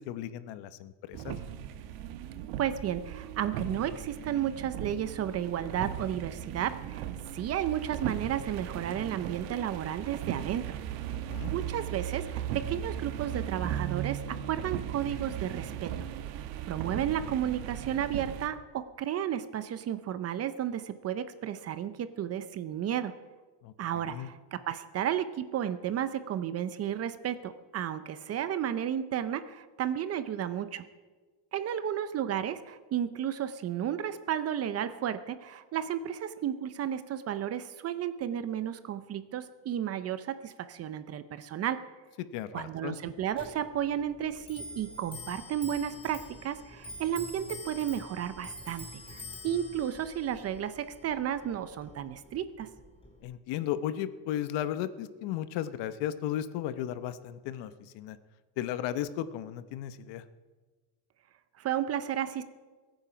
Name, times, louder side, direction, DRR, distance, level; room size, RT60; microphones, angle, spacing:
voice 1, 0.0-1.4 11.1-11.5 23.6-24.3 42.2-43.0 53.2-58.2 58.6-60.2, left 11 dB, 60° left, 13 dB, 0.9 m, -35 dB
sound 1, 1.1-18.5, right 10 dB, 85° right, 1.3 m, -37 dB
voice 2, 2.6-7.1 7.3-10.8 11.5-15.9 16.6-23.1 23.8-30.8 31.5-41.8 42.5-48.8 49.1-52.7 61.6-62.4, right 10 dB, 30° right, 12 dB, 0.6 m, -33 dB
Clock, 43.3-53.2, left 2 dB, 10° left, 3.3 m, -47 dB
21.5 x 9.0 x 5.1 m, 1.3 s
cardioid pair, 150°, 47 cm